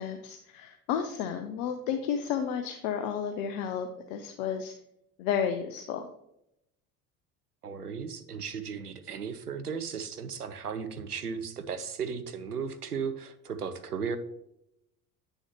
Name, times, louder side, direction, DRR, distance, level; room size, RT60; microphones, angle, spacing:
voice 1, 0.0-4.7 5.2-6.0, left 8 dB, 60° left, 6 dB, 0.8 m, -32 dB
voice 2, 7.6-14.2, right 6 dB, 90° right, 10 dB, 0.5 m, -36 dB
9.0 x 6.4 x 3.0 m, 0.81 s
figure-of-eight pair, 60°, 45 cm